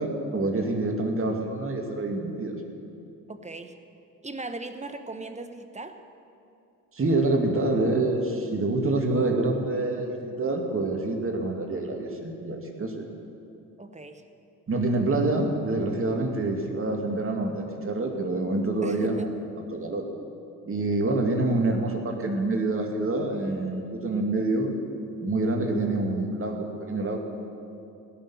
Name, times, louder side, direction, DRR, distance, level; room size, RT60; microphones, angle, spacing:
voice 1, 0.0-2.5 6.9-13.1 14.7-19.3 19.7-20.1 20.7-24.7 25.2-27.2, right 2 dB, 35° right, 2 dB, 2.5 m, -26 dB
voice 2, 3.3-3.7 4.2-6.0 13.8-14.2 18.8-19.3, right 2 dB, 20° right, 8 dB, 1.1 m, -38 dB
17.0 x 6.9 x 9.3 m, 2.6 s
hypercardioid pair, 60°, 38 cm